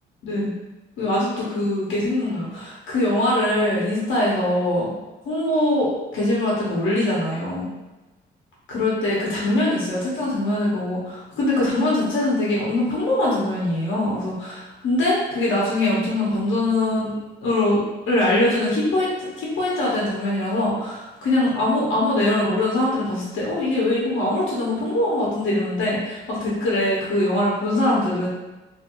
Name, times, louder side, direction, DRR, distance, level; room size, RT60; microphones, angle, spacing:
voice 1, 1.0-4.9 5.2-7.7 8.7-17.1 17.4-28.3, left 1 dB, 80° left, -6 dB, 1.1 m, -22 dB
2.9 x 2.5 x 3.0 m, 1.1 s
cardioid pair, 90°, 20 cm